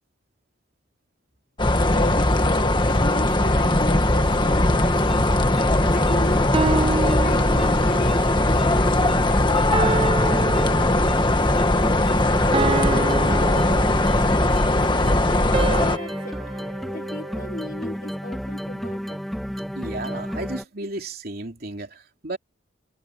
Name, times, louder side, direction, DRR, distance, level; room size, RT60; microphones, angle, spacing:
sound 1, 1.6-16.0, left 1 dB, 25° left, 1.5 m, -20 dB
voice 1, 1.9-11.3 12.0-16.4 16.9-19.2, left 1 dB, 45° left, 1.8 m, -36 dB
sound 2, 4.8-20.6, equal, ahead, 1.8 m, -32 dB
sound 3, 6.5-8.1 9.7-11.4 12.5-14.5 15.5-17.9, right 3 dB, 25° right, 0.4 m, -28 dB
voice 2, 19.7-22.4, right 2 dB, 50° right, 3.4 m, -34 dB
head